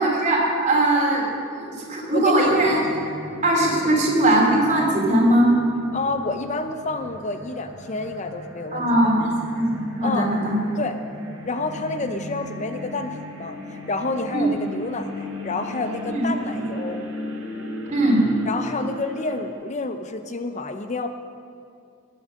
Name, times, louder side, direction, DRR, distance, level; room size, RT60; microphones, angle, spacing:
voice 1, 0.0-2.9 3.4-5.5 8.7-10.6 14.3-14.4 16.1-16.3 17.9-18.3, right 1 dB, 35° right, -2 dB, 3.4 m, -20 dB
voice 2, 2.1-2.5 5.9-9.1 10.0-10.3 10.8-11.0 11.3-17.0 18.5-21.1, left 3 dB, 35° left, 8 dB, 0.6 m, -29 dB
sound 1, 2.4-19.5, left 1 dB, 85° right, 3.3 m, -37 dB
19.0 x 9.8 x 6.5 m, 2.4 s
head